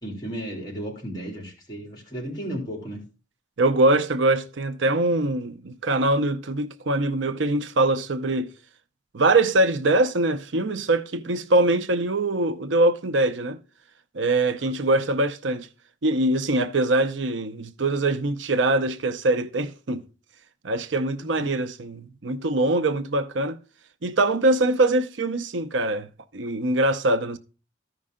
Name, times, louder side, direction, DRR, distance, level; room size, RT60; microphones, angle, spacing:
voice 1, 0.0-3.0, right 1 dB, 20° left, 3.1 m, -34 dB
voice 2, 3.6-8.5 9.1-13.6 14.1-15.7 16.0-20.1 20.6-23.6 24.0-26.1 26.3-27.4, right 2 dB, 80° right, 0.7 m, -23 dB
14.0 x 5.4 x 3.7 m
head